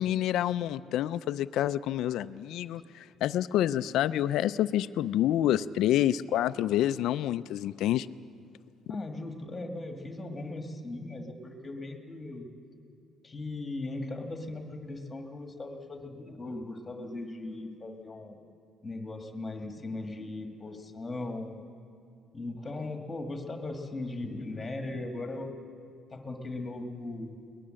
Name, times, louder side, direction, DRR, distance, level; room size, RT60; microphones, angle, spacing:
voice 1, 0.0-8.1, left 12 dB, 60° left, 14 dB, 0.4 m, -28 dB
voice 2, 8.9-12.5 13.2-18.4 18.8-21.6 22.3-25.6 26.1-27.4, left 2 dB, 15° left, 5 dB, 1.6 m, -38 dB
22.0 x 19.5 x 7.6 m, 2.5 s
cardioid pair, 175°, 0 cm